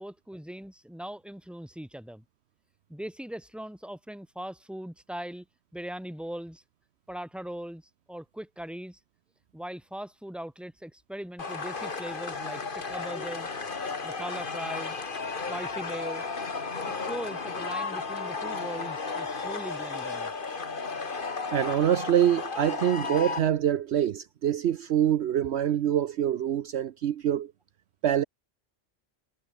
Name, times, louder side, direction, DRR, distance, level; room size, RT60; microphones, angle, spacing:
voice 1, 0.0-2.2 2.9-5.5 5.7-6.6 7.1-7.8 8.1-9.0 9.5-13.5 14.0-15.0 15.5-16.2 16.8-20.3, equal, ahead, 2.3 m, -40 dB
sound 1, 11.4-23.4, left 4 dB, 45° left, 1.8 m, -34 dB
voice 2, 21.5-27.5 28.0-28.2, right 10 dB, 65° right, 0.9 m, -25 dB
omnidirectional pair, 1.2 m